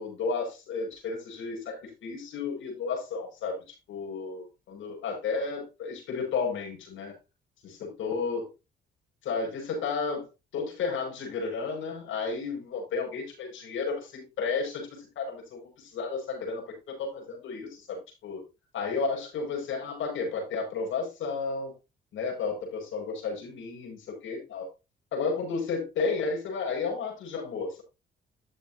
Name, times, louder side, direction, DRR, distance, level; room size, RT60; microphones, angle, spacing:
voice 1, 0.0-7.1 7.6-8.5 9.2-10.3 10.5-18.4 18.7-21.7 22.1-24.7 25.1-27.8, left 4 dB, 80° left, -1 dB, 5.8 m, -32 dB
13.0 x 7.0 x 2.8 m, 0.27 s
cardioid pair, 90°, 20 cm